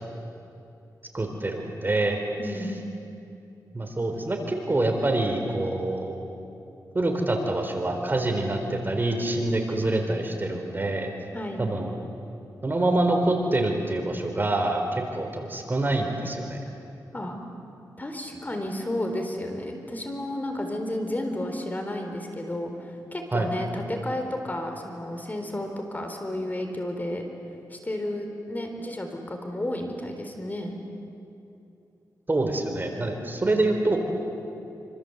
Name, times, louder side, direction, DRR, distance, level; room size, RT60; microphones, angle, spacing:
voice 1, 1.1-2.2 3.7-6.2 6.9-11.1 11.6-11.9 12.6-16.6 23.3-23.5 32.3-34.0, right 2 dB, 30° right, 3 dB, 4.0 m, -26 dB
voice 2, 2.4-2.7 11.3-11.6 17.1-17.4 18.0-27.2 27.7-30.8, left 1 dB, 25° left, 4 dB, 4.0 m, -32 dB
26.5 x 26.0 x 8.1 m, 2.7 s
cardioid pair, 75°, 7 cm